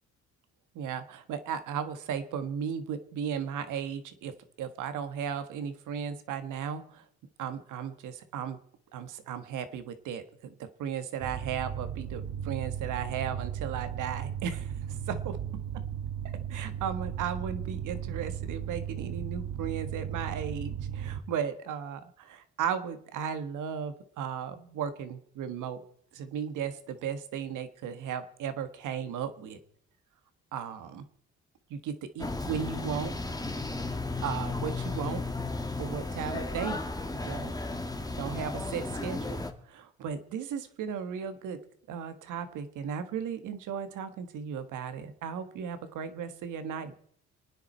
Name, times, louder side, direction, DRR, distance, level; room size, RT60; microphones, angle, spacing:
voice 1, 0.7-4.3 4.6-7.0 7.4-8.6 8.9-15.4 16.5-25.9 26.1-29.6 30.5-31.0 31.7-33.1 34.2-35.2 35.8-36.8 37.1-37.5 38.2-41.6 41.9-46.9, right 7 dB, 85° right, 10 dB, 1.5 m, -35 dB
sound 1, 11.2-21.2, right 9 dB, 65° right, 1.4 m, -36 dB
sound 2, 32.2-39.5, left 3 dB, 10° left, 1.5 m, -34 dB
28.5 x 9.7 x 4.4 m, 0.64 s
cardioid pair, 90°, 30 cm